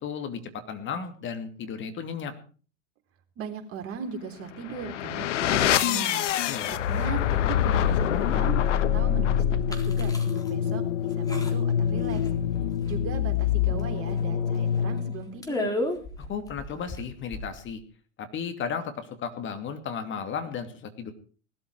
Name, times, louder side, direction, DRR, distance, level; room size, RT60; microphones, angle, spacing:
voice 1, 0.0-2.3 6.5-6.8 16.3-17.8 18.2-21.1, left 6 dB, 30° left, 7 dB, 2.6 m, -34 dB
voice 2, 3.4-6.2 6.7-12.2 12.9-15.8, right 7 dB, 35° right, 5 dB, 3.6 m, -38 dB
sound 1, 4.5-15.3, left 9 dB, 65° left, 1.3 m, -25 dB
sound 2, 9.7-10.5 10.9-11.0 11.3-11.8 12.1-12.6 12.8-13.4 13.8-13.9 14.2-14.3 14.7-15.0 15.4-17.7, left 1 dB, 10° left, 3.7 m, -33 dB
19.0 x 13.0 x 4.7 m, 0.40 s
hypercardioid pair, 100°, 39 cm